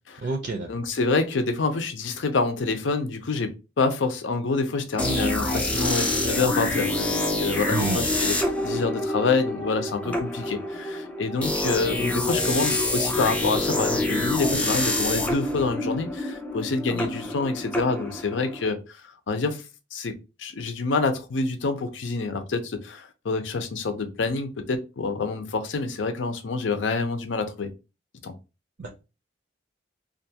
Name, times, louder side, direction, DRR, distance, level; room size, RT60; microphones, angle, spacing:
voice 1, 0.2-0.7 7.7-8.1 28.8-28.9, right 3 dB, 55° right, 0.5 m, -28 dB
voice 2, 0.7-6.9 7.4-8.3 8.6-19.0 19.3-19.6 19.9-20.1 20.4-27.7 28.2-28.3, left 3 dB, 80° left, 0.5 m, -27 dB
sound 1, 5.0-18.7, left 2 dB, 5° left, 0.3 m, -27 dB
2.5 x 2.2 x 2.7 m
head